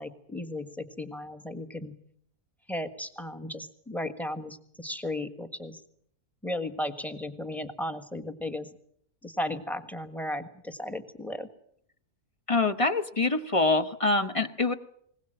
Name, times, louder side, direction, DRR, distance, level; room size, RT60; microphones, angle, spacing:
voice 1, 0.0-1.9 2.7-5.8 6.4-8.7 9.2-11.5, left 1 dB, ahead, 8 dB, 1.3 m, -35 dB
voice 2, 12.5-14.7, left 3 dB, 25° left, 9 dB, 0.9 m, -25 dB
21.5 x 20.0 x 7.7 m, 0.67 s
omnidirectional pair, 1.6 m